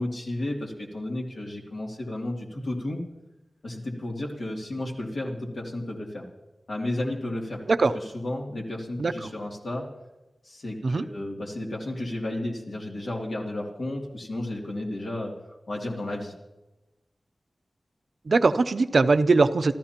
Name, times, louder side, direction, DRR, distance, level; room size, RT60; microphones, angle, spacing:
voice 1, 0.0-3.0 3.6-6.2 6.7-7.6 8.1-9.9 10.4-15.3 15.7-16.3, left 1 dB, 70° left, -1 dB, 2.6 m, -32 dB
voice 2, 18.3-19.7, right 3 dB, 70° right, 12 dB, 0.5 m, -21 dB
27.0 x 13.5 x 2.9 m, 1.1 s
wide cardioid pair, 80°, 0 cm